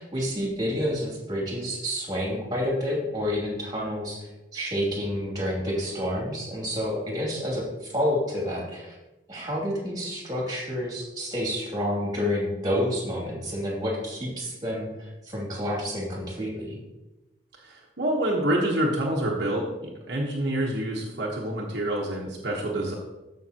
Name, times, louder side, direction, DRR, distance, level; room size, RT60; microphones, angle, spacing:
voice 1, 0.0-8.9 9.3-16.8, equal, 20° right, -3 dB, 2.6 m, -29 dB
voice 2, 17.6-22.9, right 1 dB, 60° right, -3 dB, 1.2 m, -27 dB
13.5 x 5.7 x 2.9 m, 1.0 s
head